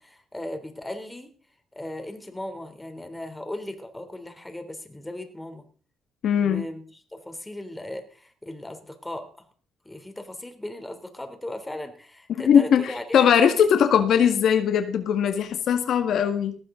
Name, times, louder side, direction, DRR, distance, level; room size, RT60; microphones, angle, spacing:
voice 1, 0.0-1.3 1.7-5.6 6.4-6.8 7.1-9.3 9.8-13.6, left 1 dB, 10° left, 7 dB, 3.4 m, -37 dB
voice 2, 6.2-6.6 12.3-16.6, left 8 dB, 70° left, 7 dB, 1.9 m, -20 dB
18.5 x 15.0 x 3.9 m, 0.41 s
cardioid pair, 90°, 0 cm